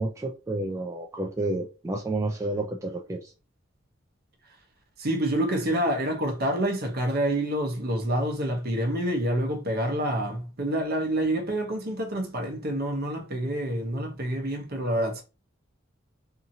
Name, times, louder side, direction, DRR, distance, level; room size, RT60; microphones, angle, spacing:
voice 1, 0.0-3.3, right 2 dB, 15° right, 0.3 m, -30 dB
voice 2, 5.0-15.2, right 1 dB, 50° right, 0.8 m, -27 dB
2.7 x 2.6 x 2.7 m
head